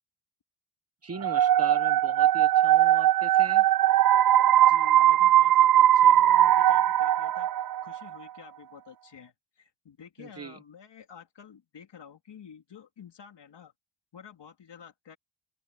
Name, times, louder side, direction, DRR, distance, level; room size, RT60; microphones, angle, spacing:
voice 1, 1.0-3.7 10.2-10.6, right 5 dB, 30° right, 1.2 m, -39 dB
sound 1, 1.2-8.0, right 12 dB, 50° right, 0.5 m, -20 dB
voice 2, 4.7-7.5 7.8-13.7 14.1-15.2, left 7 dB, 60° left, 3.3 m, -50 dB
open air
wide cardioid pair, 115°, 46 cm